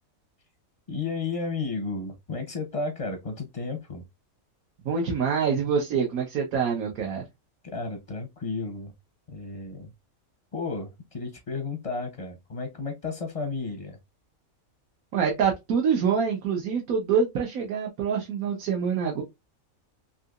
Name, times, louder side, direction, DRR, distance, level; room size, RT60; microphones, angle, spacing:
voice 1, 0.9-4.0 7.6-8.9 9.3-9.9 10.5-14.0, left 4 dB, 40° left, 0.5 m, -33 dB
voice 2, 4.8-7.2 15.1-19.2, right 6 dB, 85° right, 1.3 m, -25 dB
3.8 x 2.8 x 2.4 m
omnidirectional pair, 1.5 m